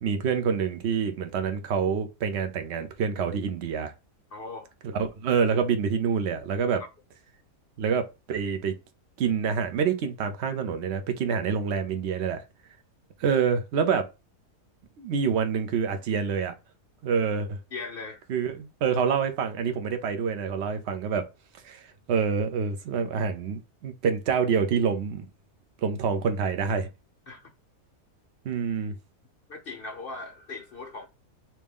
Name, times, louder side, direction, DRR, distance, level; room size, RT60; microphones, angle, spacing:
voice 1, 0.0-3.9 4.8-6.8 7.8-8.7 9.2-12.4 13.2-14.1 15.0-16.5 17.0-17.6 18.3-21.2 21.6-25.3 25.8-26.9 28.4-29.0, right 6 dB, 55° right, 0.8 m, -27 dB
voice 2, 4.3-4.7 17.7-18.2 27.3-27.5 29.5-31.1, left 3 dB, 70° left, 0.5 m, -39 dB
3.1 x 2.8 x 3.5 m
omnidirectional pair, 1.7 m